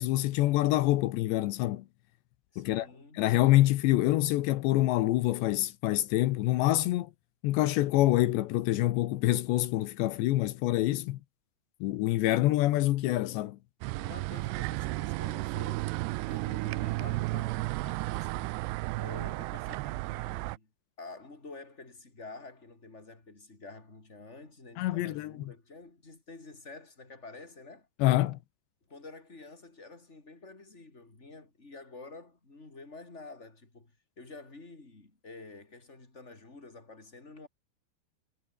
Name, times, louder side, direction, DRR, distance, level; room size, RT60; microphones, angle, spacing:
voice 1, 0.0-1.8 2.6-2.9 3.1-7.1 7.4-11.2 11.8-13.6 24.8-25.3 28.0-28.4, left 16 dB, 75° left, 3.1 m, -26 dB
voice 2, 2.5-3.2 14.0-16.0 16.3-18.6 19.0-20.7 21.0-27.9 28.9-37.5, left 3 dB, 15° left, 4.3 m, -49 dB
sound 1, 13.8-20.6, right 21 dB, 90° right, 2.4 m, -33 dB
omnidirectional pair, 5.4 m